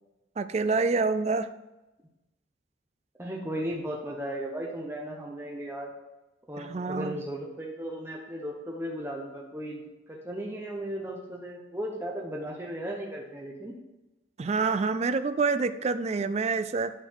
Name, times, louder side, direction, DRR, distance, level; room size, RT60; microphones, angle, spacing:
voice 1, 0.4-1.5 6.6-7.2 14.4-16.9, right 4 dB, 35° right, 12 dB, 0.3 m, -27 dB
voice 2, 3.2-5.9 6.5-13.7, equal, 10° right, -1 dB, 0.9 m, -36 dB
9.2 x 4.0 x 6.2 m, 1.0 s
head